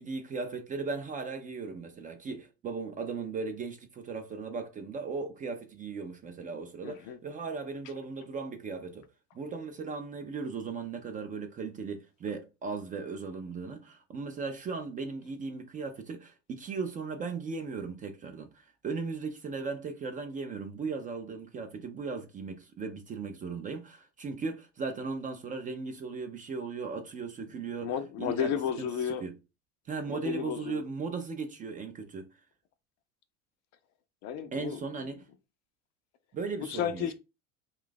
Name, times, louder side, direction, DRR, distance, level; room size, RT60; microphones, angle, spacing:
voice 1, 0.0-9.1 9.3-27.9 28.2-28.5 28.8-28.9 29.2-29.3 29.9-32.3 34.5-35.2 36.3-37.1, right 4 dB, 20° right, 0.4 m, -37 dB
voice 2, 6.8-7.2 27.8-29.3 30.1-30.8 34.2-34.8 36.6-37.1, left 8 dB, 45° left, 0.5 m, -33 dB
2.5 x 2.3 x 3.8 m
hypercardioid pair, 95°, 39 cm